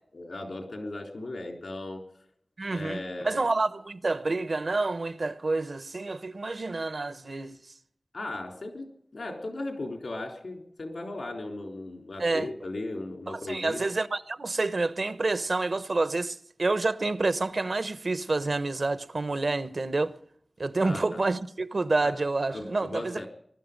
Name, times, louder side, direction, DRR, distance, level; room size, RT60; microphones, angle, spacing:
voice 1, 0.1-2.0 2.7-3.5 8.1-13.8 20.8-21.2 22.0-22.2 22.5-23.3, left 2 dB, 90° left, 3.8 m, -37 dB
voice 2, 2.6-7.6 12.2-12.5 13.3-20.2 20.6-23.3, right 3 dB, 70° right, 0.9 m, -28 dB
20.0 x 12.5 x 5.3 m
wide cardioid pair, 50°, 0 cm